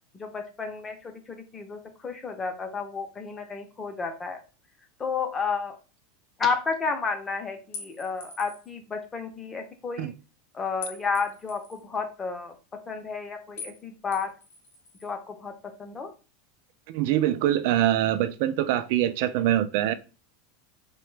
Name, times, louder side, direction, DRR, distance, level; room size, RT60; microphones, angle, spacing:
voice 1, 0.1-4.4 5.0-5.8 6.4-10.1 10.5-14.3 15.0-16.1, left 5 dB, 15° left, 5 dB, 0.6 m, -32 dB
sound 1, 7.7-8.7 10.8-11.8 13.6-13.8 14.1-15.1, left 5 dB, 90° left, 0.8 m, -42 dB
voice 2, 16.9-19.9, right 12 dB, 60° right, 12 dB, 0.3 m, -24 dB
2.8 x 2.2 x 3.2 m, 0.33 s
supercardioid pair, 145°, 0 cm